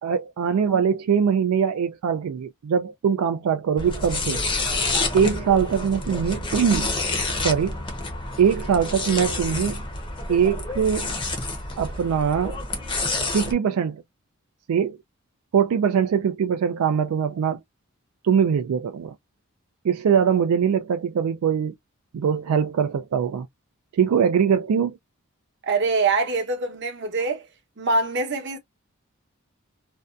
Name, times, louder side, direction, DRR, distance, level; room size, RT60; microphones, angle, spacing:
voice 1, 0.0-4.4 5.1-6.9 7.4-7.8 8.4-9.8 10.3-11.1 11.8-12.6 13.3-14.0 14.7-15.0 15.5-17.6 18.2-19.1 19.8-21.8 22.1-23.5 23.9-25.0, right 7 dB, 85° right, 0.3 m, -22 dB
sound 1, 3.8-13.5, left 3 dB, 25° left, 0.6 m, -28 dB
voice 2, 25.7-27.5 27.8-28.6, right 3 dB, 55° right, 0.8 m, -24 dB
2.6 x 2.2 x 2.3 m
head